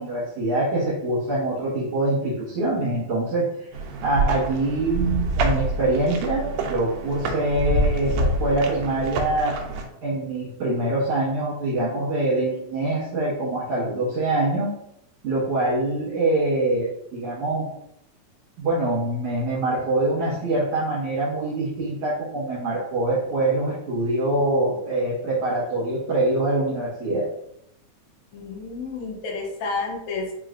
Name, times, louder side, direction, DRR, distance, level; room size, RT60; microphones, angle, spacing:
voice 1, 0.0-3.7 4.0-9.5 10.0-14.7 15.2-17.7 18.6-27.3, right 2 dB, 60° right, -10 dB, 2.1 m, -24 dB
sound 1, 3.7-9.8, right 2 dB, 80° right, 1.6 m, -26 dB
voice 2, 28.3-30.3, left 4 dB, 75° left, -1 dB, 2.0 m, -30 dB
4.9 x 3.0 x 2.5 m, 0.77 s
omnidirectional pair, 3.4 m